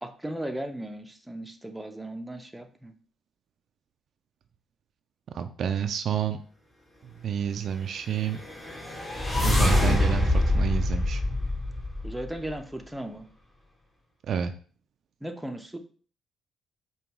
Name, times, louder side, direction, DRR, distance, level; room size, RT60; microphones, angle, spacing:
voice 1, 0.0-2.9 12.0-13.3 15.2-15.8, right 1 dB, 5° right, 5 dB, 0.5 m, -36 dB
voice 2, 5.3-6.4 7.2-8.4 9.4-11.2 14.3-14.5, right 8 dB, 65° right, 8 dB, 0.3 m, -29 dB
sound 1, 8.3-12.5, left 1 dB, 20° left, 1.1 m, -25 dB
5.1 x 2.3 x 2.9 m, 0.43 s
cardioid pair, 90°, 0 cm